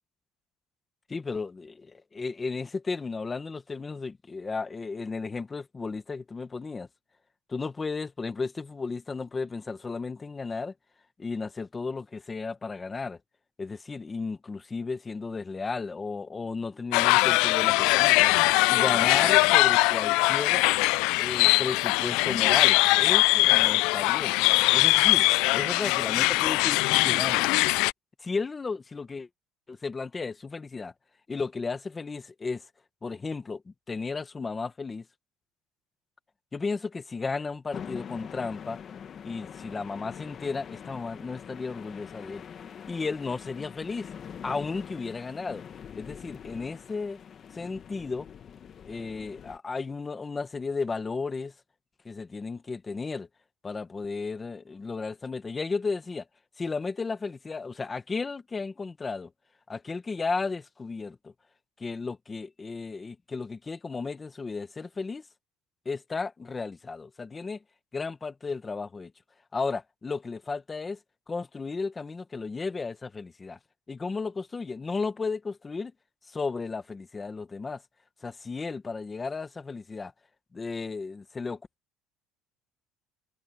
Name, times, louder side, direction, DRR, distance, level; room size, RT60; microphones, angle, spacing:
voice 1, 1.1-6.9 7.5-10.7 11.2-13.2 13.6-18.3 18.7-20.6 21.2-24.4 24.7-25.3 25.5-27.5 28.2-29.3 29.7-30.9 31.3-32.6 33.0-35.0 36.5-38.8 39.2-42.4 42.9-44.1 44.4-45.6 45.9-47.2 47.5-48.3 48.9-51.5 52.0-53.3 53.6-56.2 56.6-59.3 59.7-61.3 61.8-65.2 65.8-67.6 67.9-69.1 69.5-71.0 71.3-73.6 73.9-75.9 76.3-77.8 78.2-80.1 80.5-81.6, left 4 dB, 15° left, 1.1 m, -34 dB
sound 1, 16.9-27.9, left 23 dB, 75° left, 0.3 m, -22 dB
sound 2, 37.7-49.6, left 8 dB, 30° left, 1.5 m, -44 dB
cardioid pair, 165°, 0 cm